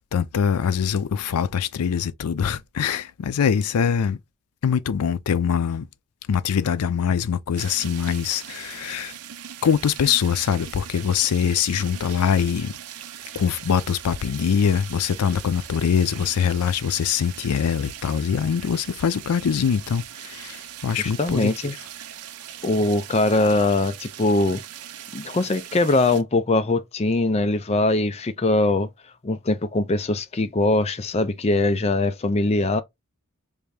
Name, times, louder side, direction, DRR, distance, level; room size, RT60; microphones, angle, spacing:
voice 1, 0.0-4.2 4.6-5.9 6.3-9.2 9.6-12.8 13.3-21.5, left 7 dB, 90° left, 0.4 m, -23 dB
sound 1, 7.6-26.2, right 10 dB, 85° right, 0.5 m, -40 dB
voice 2, 21.0-21.7 22.6-24.6 25.1-28.9 29.2-32.8, left 2 dB, 30° left, 0.4 m, -22 dB
3.4 x 2.6 x 3.2 m
head